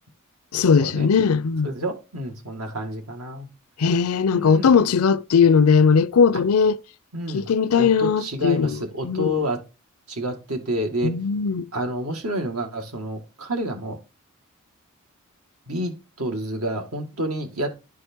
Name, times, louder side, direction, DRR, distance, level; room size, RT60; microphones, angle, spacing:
voice 1, 0.5-1.7 3.8-6.8 7.3-8.8 9.0-9.4 11.0-11.6, left 6 dB, 80° left, 0.5 m, -19 dB
voice 2, 1.6-3.5 4.3-4.7 7.1-7.5 7.8-9.6 10.1-11.1 11.7-14.0 15.7-17.7, equal, 80° right, 2.1 m, -29 dB
11.0 x 4.7 x 4.5 m
head